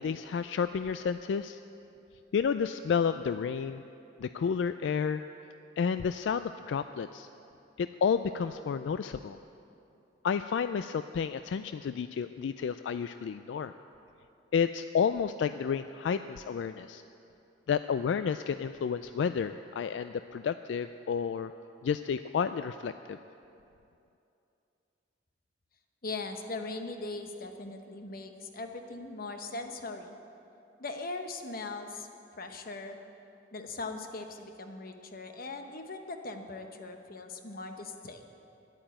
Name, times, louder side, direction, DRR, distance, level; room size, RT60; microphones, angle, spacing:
voice 1, 0.0-1.6 2.3-3.8 4.2-5.2 5.8-7.3 7.8-9.4 10.2-13.7 14.5-17.0 17.7-21.5 21.8-23.2, left 6 dB, 80° left, 11 dB, 0.3 m, -31 dB
voice 2, 26.0-30.1 30.8-32.1 32.4-33.0 33.5-38.2, left 3 dB, 55° left, 6 dB, 1.0 m, -40 dB
11.0 x 8.8 x 9.1 m, 2.7 s
head